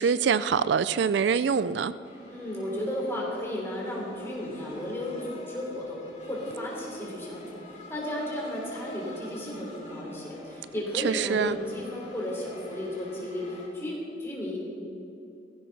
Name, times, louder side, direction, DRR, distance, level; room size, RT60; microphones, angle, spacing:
voice 1, 0.0-1.9 10.9-11.6, right 6 dB, 65° right, 0.3 m, -24 dB
sound 1, 2.0-13.7, left 1 dB, 40° left, 4.2 m, -46 dB
voice 2, 2.3-7.4 7.9-14.6, left 1 dB, 15° left, 3.5 m, -34 dB
17.0 x 15.0 x 4.1 m
head